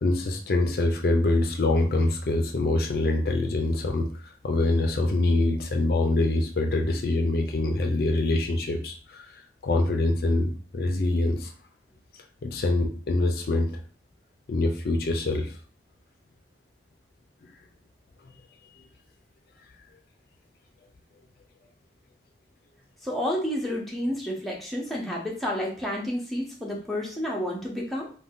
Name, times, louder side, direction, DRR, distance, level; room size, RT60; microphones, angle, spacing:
voice 1, 0.0-4.1 4.4-9.2 9.6-11.5 12.4-13.8 14.5-15.5, left 2 dB, 55° left, 4 dB, 0.4 m, -24 dB
voice 2, 23.0-28.1, equal, ahead, -3 dB, 0.5 m, -30 dB
2.5 x 2.2 x 3.5 m, 0.43 s
head